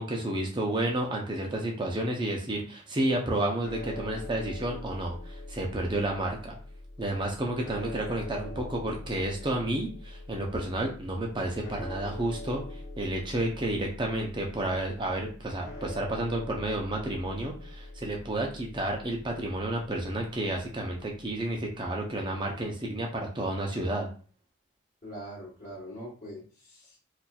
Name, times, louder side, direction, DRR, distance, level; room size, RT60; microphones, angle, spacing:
voice 1, 0.0-6.6 7.0-24.1, right 1 dB, 20° right, 0 dB, 0.6 m, -31 dB
sound 1, 3.6-21.9, left 1 dB, 60° left, 0.7 m, -43 dB
voice 2, 25.0-27.0, equal, 35° left, -9 dB, 1.3 m, -43 dB
4.1 x 2.5 x 2.3 m, 0.40 s
head